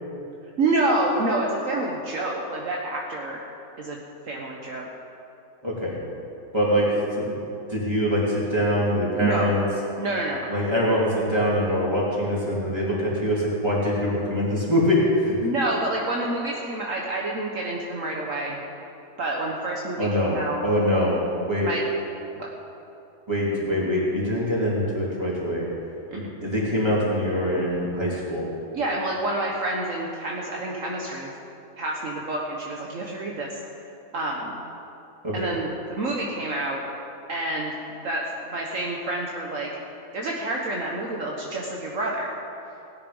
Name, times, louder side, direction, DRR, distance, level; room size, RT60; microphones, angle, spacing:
voice 1, 0.6-3.4 3.8-4.9 9.2-9.5 10.0-10.5 15.4-18.6 19.2-20.6 21.6-21.8 22.4-22.5 26.1-26.3 28.7-31.3 31.8-33.6 34.1-34.6 35.3-36.8 37.3-37.7 38.0-39.7 40.1-42.3, right 2 dB, 60° right, -2 dB, 1.5 m, -28 dB
voice 2, 5.6-6.0 6.5-6.9 7.2-7.3 7.7-9.7 10.5-15.4 20.0-21.2 21.5-21.7 23.3-25.7 26.1-28.5 35.2-35.3, equal, 15° right, -6 dB, 3.4 m, -24 dB
17.5 x 9.7 x 5.4 m, 2.8 s
omnidirectional pair, 1.5 m